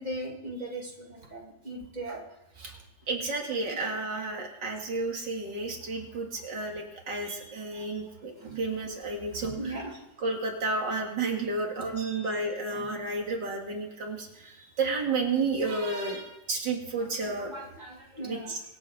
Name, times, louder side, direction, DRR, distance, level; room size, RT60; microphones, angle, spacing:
voice 1, 0.0-2.2 9.6-9.9 12.0-12.2 17.5-18.5, right 1 dB, 25° right, -1 dB, 2.9 m, -38 dB
voice 2, 3.1-9.8 10.2-17.5 18.2-18.6, right 3 dB, 85° right, 1 dB, 2.9 m, -31 dB
25.0 x 8.5 x 5.2 m, 1.0 s
omnidirectional pair, 1.9 m